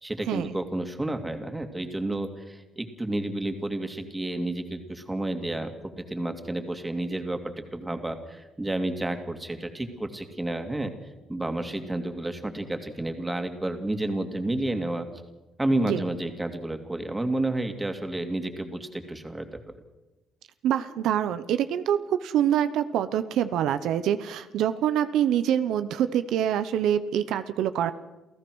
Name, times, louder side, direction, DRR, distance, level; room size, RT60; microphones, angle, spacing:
voice 1, 0.0-5.7 6.0-10.9 11.3-15.1 15.6-19.6, right 1 dB, 15° right, 6 dB, 2.6 m, -30 dB
voice 2, 20.6-27.9, right 10 dB, 85° right, 11 dB, 0.8 m, -25 dB
28.5 x 15.0 x 6.3 m, 1.1 s
cardioid pair, 90°, 0 cm